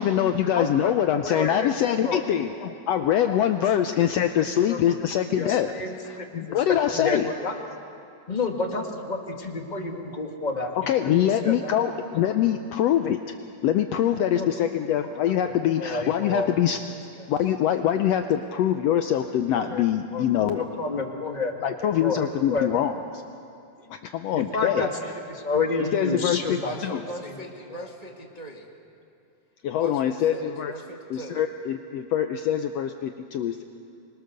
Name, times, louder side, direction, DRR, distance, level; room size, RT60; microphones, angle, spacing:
voice 1, 0.0-5.7 6.0-7.3 10.9-13.4 13.6-16.8 17.3-20.6 21.6-22.9 23.9-25.1 25.8-27.0 29.6-30.7 31.1-33.6, left 10 dB, 75° left, 7 dB, 1.6 m, -24 dB
voice 2, 0.5-0.9 1.2-2.2 3.3-3.4 3.8-4.0 4.3-4.8 5.3-5.9 6.3-6.6 6.9-7.5 8.3-10.7 11.0-11.7 14.3-14.5 15.2-16.5 19.7-19.8 20.1-21.5 22.0-22.7 24.3-24.9 25.3-26.7 27.7-27.8, left 3 dB, 20° left, 2 dB, 1.3 m, -30 dB
voice 3, 26.6-28.7 29.8-31.4, equal, 15° right, 0 dB, 1.3 m, -40 dB
25.5 x 22.0 x 6.7 m, 2.6 s
omnidirectional pair, 3.4 m